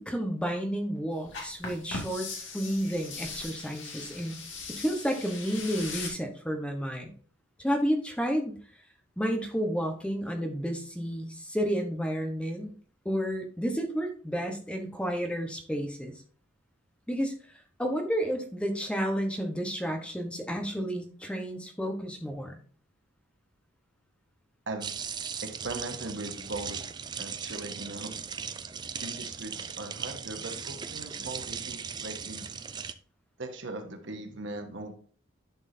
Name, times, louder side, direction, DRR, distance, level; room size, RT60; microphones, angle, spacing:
voice 1, 0.0-2.3 2.5-4.4 4.7-7.1 7.6-8.6 9.2-12.7 13.0-16.1 17.1-17.3 17.8-22.6, equal, 5° left, 4 dB, 1.0 m, -31 dB
sound 1, 1.3-6.1, left 4 dB, 65° left, 2.3 m, -40 dB
voice 2, 24.7-25.0 25.4-26.8 27.2-28.1 29.0-32.5 33.4-34.9, right 2 dB, 60° right, 5 dB, 1.3 m, -39 dB
sound 2, 24.8-32.9, right 6 dB, 20° right, 0.4 m, -38 dB
11.0 x 6.2 x 2.7 m, 0.43 s
head